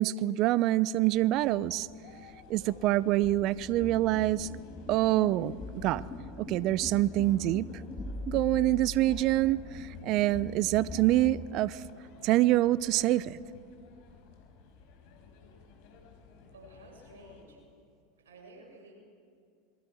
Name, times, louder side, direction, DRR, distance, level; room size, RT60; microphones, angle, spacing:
voice 1, 0.0-1.9 2.5-4.5 4.9-6.0 6.4-7.7 8.3-11.8 12.2-13.4, right 15 dB, 50° right, 20 dB, 0.7 m, -26 dB
sound 1, 1.1-17.5, left 5 dB, 60° left, 4.9 m, -55 dB
sound 2, 2.5-11.5, left 3 dB, 20° left, 3.2 m, -42 dB
voice 2, 16.5-17.6 18.2-18.9, right 2 dB, 80° right, 0 dB, 7.3 m, -53 dB
27.0 x 22.5 x 6.4 m, 2.3 s
hypercardioid pair, 90°, 0 cm